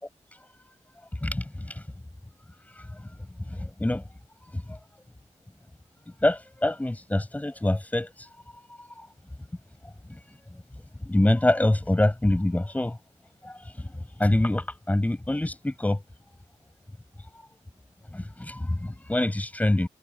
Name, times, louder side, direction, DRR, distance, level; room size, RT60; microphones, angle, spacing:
voice 1, 1.2-1.9 2.7-3.1 3.4-4.0 4.4-4.8 6.2-9.1 10.1-10.4 11.0-13.0 13.4-16.0 18.1-19.9, left 1 dB, 10° left, 7.4 m, -26 dB
wide cardioid pair, 150°, 13 cm